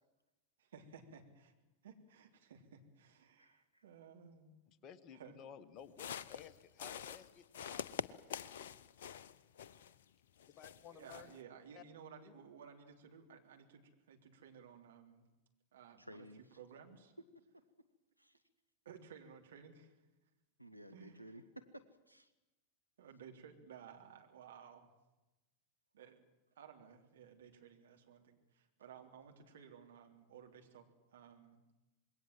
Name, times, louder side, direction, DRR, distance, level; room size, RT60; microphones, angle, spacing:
voice 1, 0.6-1.5 1.8-4.6 5.1-5.4 10.9-15.3 15.7-16.2 16.6-17.1 18.9-20.0 20.9-21.3 23.0-24.9 25.9-26.3 26.6-30.9 31.1-31.6, right 7 dB, 60° right, 3 dB, 3.6 m, -57 dB
voice 2, 3.4-3.8 16.0-16.4 17.5-17.6 18.2-18.4 20.6-22.3, equal, 90° right, 7 dB, 1.2 m, -55 dB
voice 3, 4.7-8.1 10.5-11.4 11.7-11.8 12.2-12.3, left 8 dB, 35° left, 12 dB, 1.5 m, -55 dB
sound 1, 5.8-10.0 10.4-11.4, left 8 dB, 60° left, 0.8 m, -46 dB
26.5 x 21.5 x 7.6 m, 1.0 s
figure-of-eight pair, 90°, 0 cm